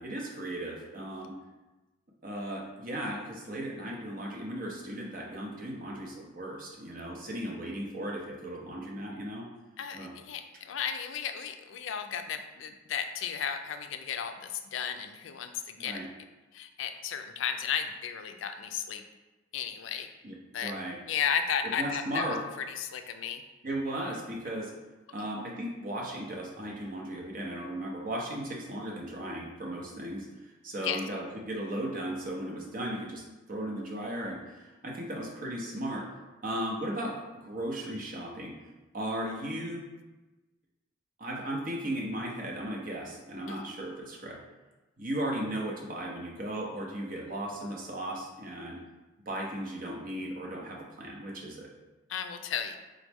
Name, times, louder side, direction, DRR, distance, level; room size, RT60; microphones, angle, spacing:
voice 1, 0.0-1.3 2.2-9.5 9.9-10.1 15.8-16.1 20.2-20.3 20.6-21.0 21.8-22.4 23.6-24.7 25.1-30.3 30.6-33.2 33.5-36.1 36.4-38.5 38.9-39.8 41.2-44.4 45.0-48.8 49.3-51.7, right 1 dB, 45° right, -2 dB, 0.7 m, -36 dB
voice 2, 9.8-16.0 16.5-19.0 19.5-20.1 20.5-20.7 21.1-22.3 22.6-23.4 30.8-31.0 43.5-43.7 52.1-52.8, left 7 dB, 75° left, 8 dB, 0.3 m, -34 dB
3.8 x 3.1 x 3.4 m, 1.1 s
head